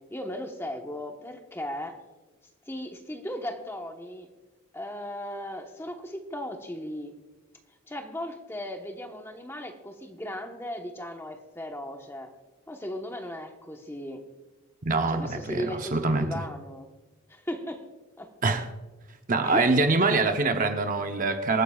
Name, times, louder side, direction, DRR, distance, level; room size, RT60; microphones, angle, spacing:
voice 1, 0.1-1.9 2.7-4.3 4.7-7.1 7.9-12.3 12.7-14.2 15.1-16.9 17.3-17.8 18.2-18.3 19.4-19.7 19.9-20.1, equal, 10° left, 1.1 m, -36 dB
voice 2, 14.8-16.3 18.4-18.7 19.3-21.6, right 3 dB, 35° right, 0.7 m, -24 dB
26.5 x 9.5 x 2.4 m
head